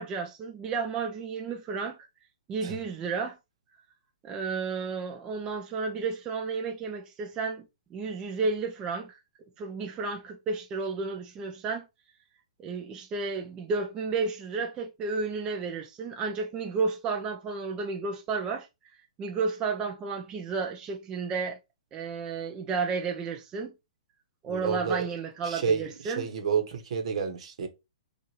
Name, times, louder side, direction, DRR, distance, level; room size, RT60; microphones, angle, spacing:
voice 1, 0.0-2.0 2.5-3.4 4.2-9.2 9.6-11.9 12.6-18.7 19.2-21.6 21.9-23.7 24.4-26.3, right 4 dB, 20° right, 0.5 m, -32 dB
voice 2, 24.5-25.1 25.4-27.7, right 6 dB, 60° right, 1.0 m, -30 dB
4.6 x 2.4 x 3.0 m
hypercardioid pair, 140°, 4 cm